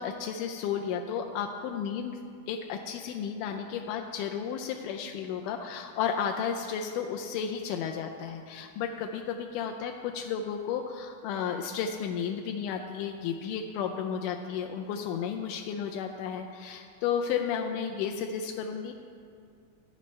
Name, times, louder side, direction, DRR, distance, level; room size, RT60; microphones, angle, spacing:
voice 1, 0.0-2.2 2.5-18.9, left 7 dB, 85° left, 3 dB, 2.1 m, -33 dB
16.5 x 9.3 x 3.2 m, 2.3 s
omnidirectional pair, 3.6 m